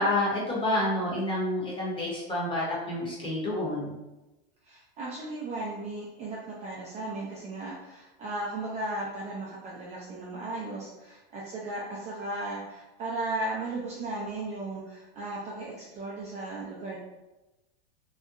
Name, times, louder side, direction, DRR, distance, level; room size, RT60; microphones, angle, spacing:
voice 1, 0.0-4.0, left 1 dB, 15° left, -5 dB, 0.8 m, -29 dB
voice 2, 4.6-17.0, right 2 dB, 25° right, -5 dB, 0.3 m, -36 dB
2.8 x 2.1 x 2.4 m, 1.0 s
supercardioid pair, 130°, 30 cm